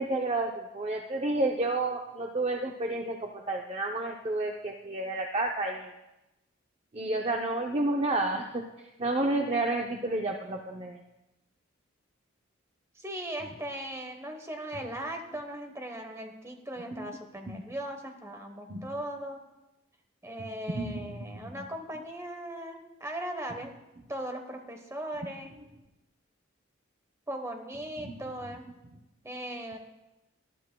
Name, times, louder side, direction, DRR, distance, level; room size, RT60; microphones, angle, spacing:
voice 1, 0.0-5.9 6.9-11.0 17.0-17.1 17.5-17.6 18.7-18.9 20.4-20.5 20.7-21.6 28.0-28.1, right 2 dB, 30° right, 1 dB, 0.5 m, -31 dB
voice 2, 12.9-19.4 20.2-23.7 24.1-25.5 27.3-28.7 29.2-29.8, right 1 dB, 15° right, 5 dB, 1.0 m, -38 dB
19.5 x 11.5 x 2.2 m, 0.98 s
head